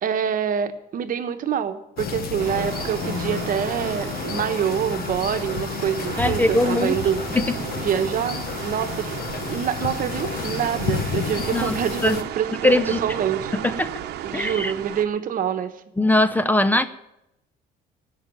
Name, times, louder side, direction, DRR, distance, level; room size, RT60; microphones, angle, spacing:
voice 1, 0.0-7.2 7.8-9.1 9.5-12.7 13.0-13.5 14.2-15.7, right 8 dB, 55° right, 9 dB, 1.2 m, -26 dB
sound 1, 2.0-12.2, left 7 dB, 65° left, 1.2 m, -31 dB
sound 2, 2.4-15.1, right 11 dB, 75° right, 0.9 m, -34 dB
voice 2, 6.2-7.0 7.3-7.5 11.5-11.8 12.0-12.2 12.6-13.0 13.5-14.0 14.3-14.7 16.0-16.8, left 1 dB, 10° left, 13 dB, 0.6 m, -20 dB
16.5 x 5.8 x 9.0 m, 0.86 s
cardioid pair, 110°, 17 cm